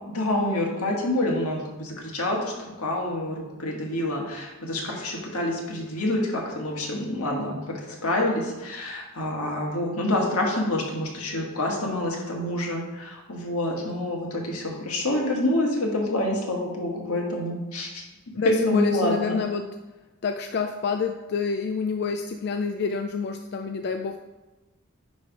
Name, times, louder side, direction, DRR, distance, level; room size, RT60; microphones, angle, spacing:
voice 1, 0.1-18.0 18.3-19.4, left 1 dB, 85° left, -1 dB, 1.7 m, -27 dB
voice 2, 18.4-19.6 20.2-24.2, left 5 dB, 50° left, 6 dB, 0.3 m, -28 dB
9.9 x 3.3 x 5.1 m, 1.1 s
head